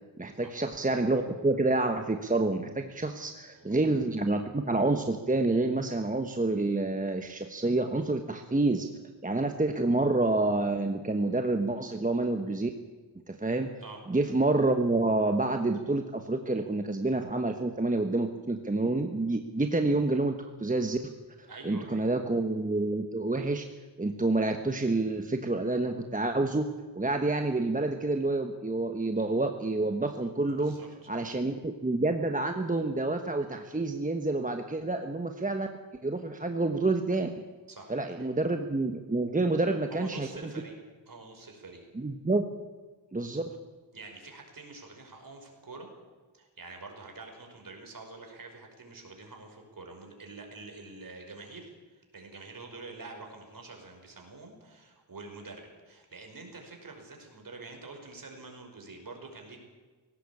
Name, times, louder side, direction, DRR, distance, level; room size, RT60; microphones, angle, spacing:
voice 1, 0.2-8.9 9.2-12.7 13.3-13.7 14.1-21.0 21.4-23.7 24.0-26.7 27.0-30.8 31.1-35.7 36.0-37.3 37.9-40.3 42.0-42.5 43.1-43.4, right 2 dB, 15° right, 6 dB, 1.2 m, -28 dB
voice 2, 3.2-3.7 13.8-14.0 21.5-22.1 30.5-31.1 37.7-37.9 39.9-40.7 41.1-41.9 43.9-45.9 46.3-59.6, right 3 dB, 45° right, 3 dB, 5.4 m, -46 dB
18.5 x 17.5 x 8.6 m, 1.4 s
wide cardioid pair, 105°, 46 cm